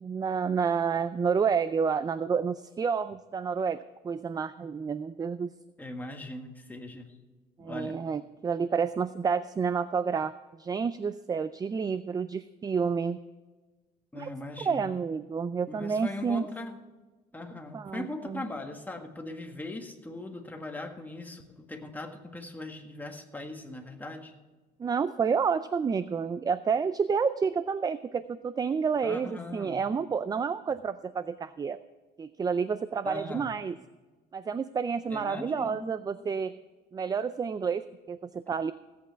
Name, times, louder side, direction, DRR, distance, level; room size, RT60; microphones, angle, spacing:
voice 1, 0.0-5.5 7.6-10.3 10.6-13.2 14.1-14.3 14.7-16.5 17.7-18.4 24.8-31.8 32.2-33.8 34.3-36.6 36.9-38.7, right 6 dB, 20° right, 14 dB, 0.4 m, -29 dB
voice 2, 5.8-7.1 7.6-8.0 14.1-14.9 15.7-16.8 17.3-24.3 29.0-29.8 33.0-33.6 35.1-36.0 36.3-36.4, left 2 dB, 10° left, 3 dB, 1.7 m, -40 dB
16.5 x 8.5 x 4.5 m, 1.3 s
cardioid pair, 110°, 17 cm